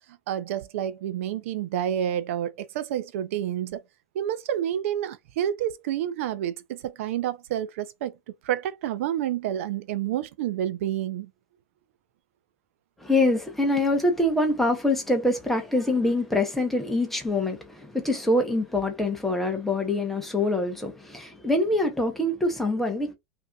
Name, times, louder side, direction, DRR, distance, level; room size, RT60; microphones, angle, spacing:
voice 1, 0.3-3.8 4.1-8.2 8.4-11.3, right 11 dB, 60° right, 0.4 m, -29 dB
voice 2, 13.0-23.1, left 2 dB, 5° left, 0.7 m, -25 dB
5.2 x 2.6 x 2.2 m
supercardioid pair, 180°, 8 cm